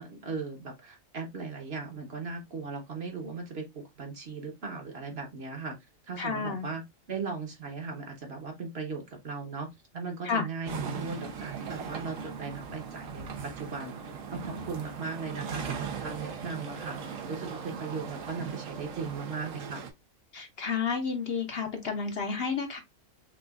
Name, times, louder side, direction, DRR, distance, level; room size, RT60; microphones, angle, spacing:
voice 1, 0.0-5.8 6.1-6.8 7.1-9.7 9.9-14.0 14.3-19.8, right 4 dB, 50° right, 1.2 m, -38 dB
voice 2, 6.2-6.7 10.2-10.5 20.3-22.8, left 5 dB, 55° left, 0.8 m, -31 dB
sound 1, 10.6-19.9, right 6 dB, 75° right, 1.1 m, -39 dB
5.9 x 2.4 x 2.3 m
omnidirectional pair, 1.4 m